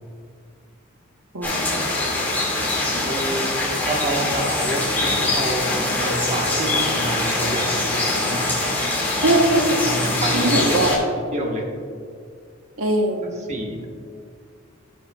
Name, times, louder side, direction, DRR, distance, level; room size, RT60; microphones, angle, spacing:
voice 1, 1.3-1.8 9.2-10.0 10.3-11.0 12.8-13.4, right 2 dB, 80° right, 2 dB, 1.0 m, -21 dB
sound 1, 1.4-11.0, left 2 dB, 10° left, 2.0 m, -23 dB
voice 2, 3.0-8.5 9.3-10.8 11.1-11.6 13.4-13.8, right 1 dB, 35° right, 0 dB, 1.2 m, -28 dB
17.0 x 6.4 x 2.3 m, 2.2 s
head